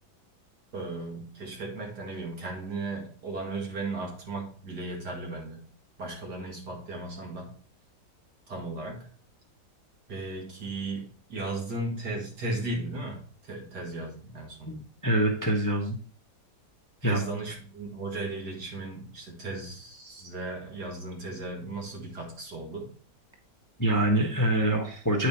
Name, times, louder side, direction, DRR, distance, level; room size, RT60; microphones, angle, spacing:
voice 1, 0.7-5.6 6.0-7.5 8.5-9.1 10.1-14.8 17.0-22.9, right 2 dB, 70° right, 0 dB, 2.6 m, -36 dB
voice 2, 15.0-16.0 17.0-17.2 23.8-25.3, right 1 dB, 15° left, 2 dB, 0.8 m, -25 dB
8.9 x 4.9 x 4.3 m, 0.43 s
omnidirectional pair, 1.9 m